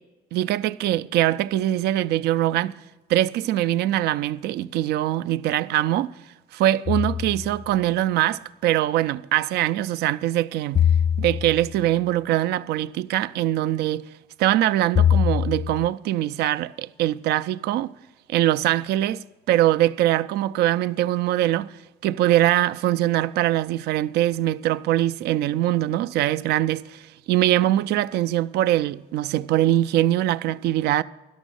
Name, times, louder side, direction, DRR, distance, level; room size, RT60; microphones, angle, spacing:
voice 1, 0.3-2.7 3.1-6.1 6.5-10.8 11.2-14.0 14.4-17.9 18.3-21.8 22.0-31.0, right 13 dB, 75° right, 0.4 m, -22 dB
sound 1, 6.9-7.7 10.7-11.8 14.9-15.9, left 9 dB, 25° left, 0.4 m, -22 dB
12.0 x 6.2 x 9.1 m
cardioid pair, 110°, 17 cm